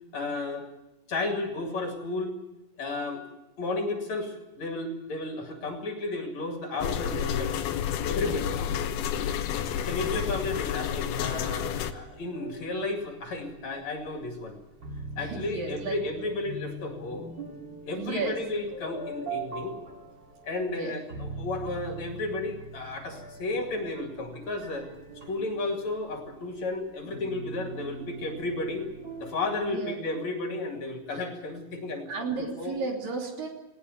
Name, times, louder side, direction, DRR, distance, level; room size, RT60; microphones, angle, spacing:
voice 1, 0.1-0.7 1.1-2.4 2.8-3.2 3.6-7.6 8.0-8.5 9.8-14.6 15.2-17.3 17.8-19.8 20.4-24.9 25.3-28.9 29.2-32.1 32.4-32.7, left 2 dB, 50° left, 4 dB, 3.3 m, -33 dB
sound 1, 6.8-11.9, left 9 dB, 80° left, 3.0 m, -30 dB
sound 2, 10.3-29.7, right 2 dB, 30° right, 2.9 m, -43 dB
voice 2, 15.2-16.0 17.9-18.4 20.7-20.9 29.6-29.9 32.1-33.5, right 4 dB, 65° right, 1 dB, 4.8 m, -33 dB
19.0 x 18.5 x 9.3 m, 1.0 s
omnidirectional pair, 4.4 m